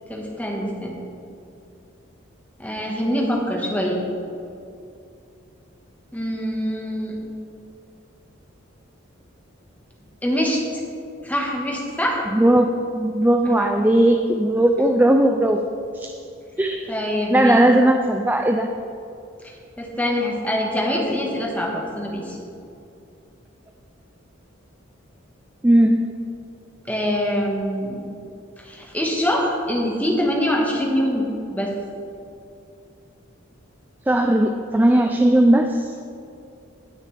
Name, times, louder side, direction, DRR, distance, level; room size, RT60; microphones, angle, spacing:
voice 1, 0.1-0.9 2.6-4.0 6.1-7.2 10.2-10.8 11.2-12.2 13.4-13.7 16.9-17.7 19.8-22.4 26.8-28.0 28.6-31.7, equal, 10° left, -2 dB, 1.4 m, -24 dB
voice 2, 12.3-15.6 15.9-16.1 16.6-16.9 17.3-18.7 25.6-26.1 34.1-36.1, right 1 dB, 10° right, 4 dB, 0.3 m, -18 dB
18.5 x 6.4 x 3.4 m, 2.6 s
head